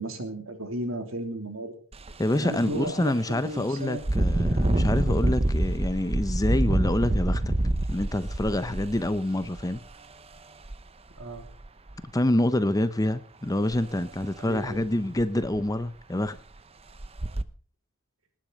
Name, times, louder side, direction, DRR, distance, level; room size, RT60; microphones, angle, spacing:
voice 1, 0.0-1.8 2.3-4.0 11.2-11.4 14.4-14.9, right 1 dB, 65° right, 3.1 m, -34 dB
Engine, 1.9-2.1 2.6-2.8 4.0-9.8 10.6-10.8 11.2-11.9 13.7-13.8 14.2-14.3 14.8-14.9 15.2-15.7 16.3-16.4 17.0-17.4, right 1 dB, 30° right, 0.8 m, -26 dB
voice 2, 2.2-7.5 7.9-9.8 12.1-16.4, left 1 dB, 15° left, 0.7 m, -27 dB
19.5 x 10.5 x 5.3 m
head